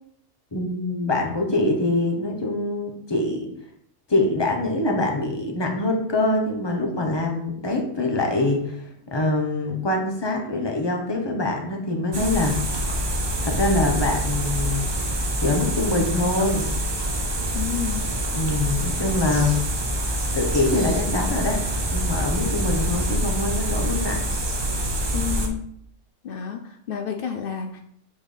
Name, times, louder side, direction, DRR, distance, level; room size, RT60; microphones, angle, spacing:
voice 1, 0.5-3.5 4.1-12.6 13.4-14.9 15.4-16.6 18.3-19.6 20.3-21.6 21.9-24.2, left 2 dB, 20° left, 1 dB, 0.9 m, -24 dB
sound 1, 12.1-25.5, right 1 dB, 40° right, 0.3 m, -26 dB
voice 2, 17.5-18.0 25.1-25.7 26.2-27.8, left 9 dB, 80° left, 5 dB, 0.5 m, -30 dB
7.2 x 3.9 x 3.3 m, 0.69 s
omnidirectional pair, 1.5 m